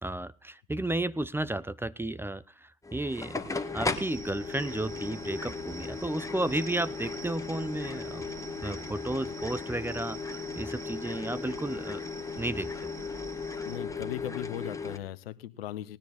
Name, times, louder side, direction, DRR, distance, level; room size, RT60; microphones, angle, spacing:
voice 1, 0.0-3.4 3.7-8.3 8.6-12.0 12.4-12.9, right 1 dB, 10° right, 18 dB, 0.6 m, -33 dB
sound 1, 2.8-15.0, left 4 dB, 10° left, 1.9 m, -37 dB
sound 2, 3.9-13.8, right 6 dB, 90° right, 1.4 m, -48 dB
voice 2, 13.7-16.0, left 13 dB, 85° left, 16 dB, 1.0 m, -38 dB
19.5 x 10.5 x 4.1 m, 0.33 s
hypercardioid pair, 70°, 29 cm